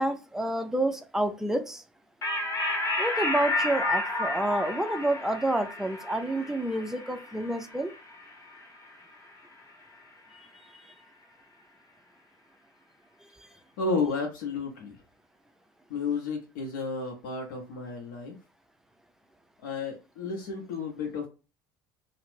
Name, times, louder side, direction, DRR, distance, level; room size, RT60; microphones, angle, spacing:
voice 1, 0.0-1.8 3.0-7.9 10.3-10.5 10.7-10.8, right 1 dB, 5° right, 7 dB, 0.4 m, -29 dB
sound 1, 2.2-9.1, left 2 dB, 25° left, 0.9 m, -32 dB
voice 2, 13.8-15.0 15.9-18.4 19.6-21.3, left 4 dB, 65° left, 0 dB, 0.7 m, -32 dB
2.4 x 2.0 x 3.2 m, 0.32 s
figure-of-eight pair, 65°, 11 cm